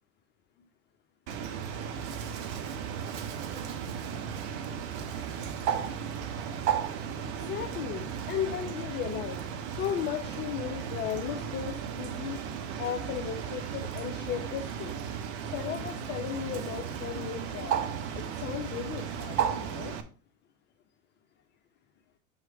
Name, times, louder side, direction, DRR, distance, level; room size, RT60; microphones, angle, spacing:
Bird, 1.3-20.0, right 8 dB, 50° right, 0.9 m, -35 dB
voice 1, 7.4-9.4 9.8-12.4 12.8-15.0 15.5-17.8 18.1-20.0, left 9 dB, 25° left, 3 dB, 0.6 m, -35 dB
7.7 x 3.2 x 4.6 m, 0.38 s
hypercardioid pair, 100°, 43 cm